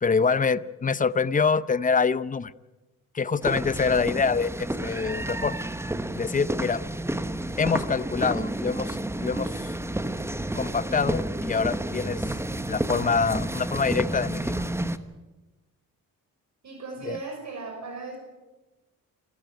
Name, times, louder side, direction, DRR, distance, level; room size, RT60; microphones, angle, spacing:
voice 1, 0.0-2.5 3.1-5.5 6.1-6.8 7.6-9.7 10.5-12.2 12.7-14.6 17.1-17.2, left 5 dB, 25° left, 17 dB, 0.7 m, -25 dB
sound 1, 3.4-15.0, right 1 dB, 10° right, 1.1 m, -30 dB
voice 2, 16.6-18.2, right 3 dB, 55° right, 2 dB, 6.2 m, -37 dB
28.0 x 14.5 x 9.2 m, 1.1 s
cardioid pair, 105°, 33 cm